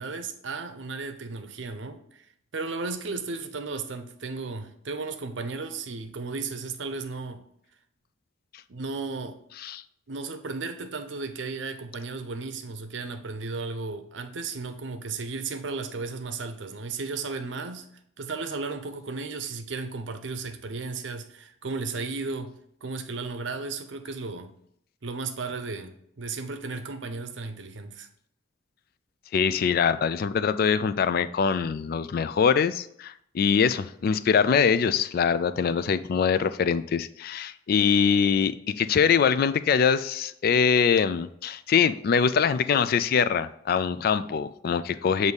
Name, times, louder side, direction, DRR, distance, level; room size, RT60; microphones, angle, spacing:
voice 1, 0.0-2.3 2.5-7.4 8.7-9.4 10.1-17.9 18.2-22.5 22.8-24.5 25.0-28.1, right 4 dB, 75° right, 8 dB, 0.7 m, -34 dB
voice 2, 29.3-45.3, left 6 dB, 55° left, 14 dB, 0.3 m, -23 dB
7.9 x 2.7 x 5.2 m, 0.70 s
head